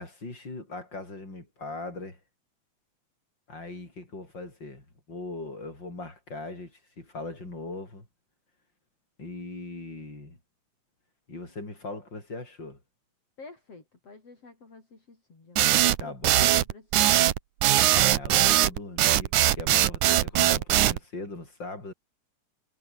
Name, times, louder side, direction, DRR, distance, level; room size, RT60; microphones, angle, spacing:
voice 1, 0.0-2.2 3.5-8.1 9.2-10.4 11.3-12.8 16.0-16.5 17.9-21.9, left 2 dB, 35° left, 8.5 m, -40 dB
voice 2, 13.4-17.3, left 3 dB, 55° left, 6.9 m, -49 dB
sound 1, 15.6-21.0, right 13 dB, 90° right, 2.6 m, -21 dB
omnidirectional pair, 3.3 m